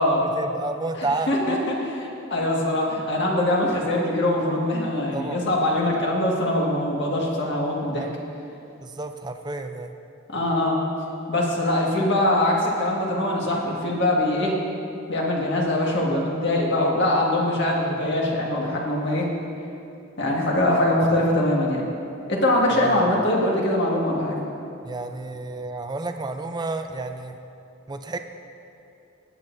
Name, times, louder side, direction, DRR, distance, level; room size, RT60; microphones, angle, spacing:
voice 1, 0.2-1.7 5.1-5.4 5.9-6.0 7.9-8.2 8.8-9.9 22.7-23.2 24.8-27.4 27.9-28.2, right 2 dB, 20° right, 6 dB, 0.5 m, -31 dB
voice 2, 0.9-8.0 10.3-10.8 11.3-14.6 15.1-19.3 20.2-21.8 22.3-24.4, left 1 dB, 55° left, -2 dB, 1.8 m, -23 dB
18.0 x 9.2 x 2.7 m, 2.7 s
head